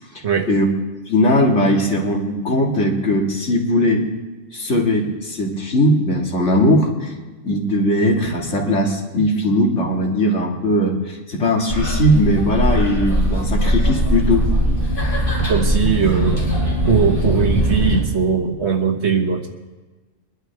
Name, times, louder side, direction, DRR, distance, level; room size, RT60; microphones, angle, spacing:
voice 1, 0.1-0.7 1.1-4.1 4.5-7.1 7.4-14.5, left 1 dB, 55° left, 0 dB, 2.3 m, -19 dB
sound 1, 11.7-18.0, equal, 40° left, 4.9 m, -20 dB
voice 2, 15.4-16.4 16.9-19.5, right 6 dB, 55° right, 4 dB, 1.4 m, -19 dB
23.0 x 11.5 x 3.4 m, 1.2 s
omnidirectional pair, 1.4 m